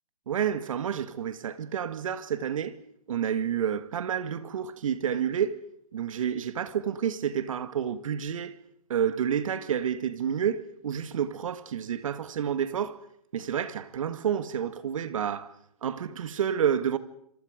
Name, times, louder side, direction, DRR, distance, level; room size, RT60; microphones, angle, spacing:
voice 1, 0.3-2.8 3.1-5.6 5.9-8.6 8.9-13.0 13.3-15.5 15.8-17.0, right 8 dB, 60° right, 2.1 m, -29 dB
27.5 x 26.0 x 5.2 m
hypercardioid pair, 140°, 19 cm